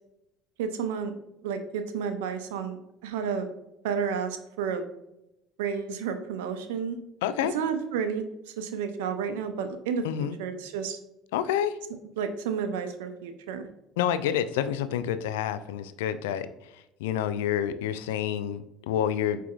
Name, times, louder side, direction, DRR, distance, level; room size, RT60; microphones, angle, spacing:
voice 1, 0.6-1.1 1.4-2.8 3.0-3.5 3.8-4.8 5.6-7.0 7.5-8.3 8.6-11.0 12.2-13.7, right 6 dB, 85° right, 9 dB, 0.5 m, -31 dB
voice 2, 7.2-7.5 10.0-10.4 11.3-11.8 14.0-16.5 16.7-19.4, left 10 dB, 85° left, 12 dB, 0.3 m, -28 dB
4.8 x 4.6 x 2.4 m, 0.89 s
hypercardioid pair, 75°, 0 cm